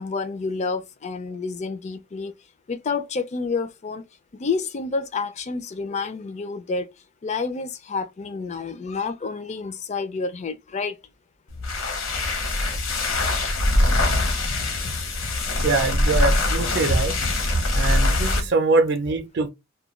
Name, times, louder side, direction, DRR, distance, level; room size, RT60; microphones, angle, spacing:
voice 1, 0.0-2.3 2.7-4.0 4.3-6.9 7.2-11.0, left 4 dB, 35° left, 0.4 m, -29 dB
sound 1, 11.5-18.5, left 2 dB, 70° left, 0.8 m, -23 dB
voice 2, 15.6-17.1 17.7-19.5, right 3 dB, 55° right, 0.5 m, -23 dB
2.3 x 2.2 x 3.0 m
head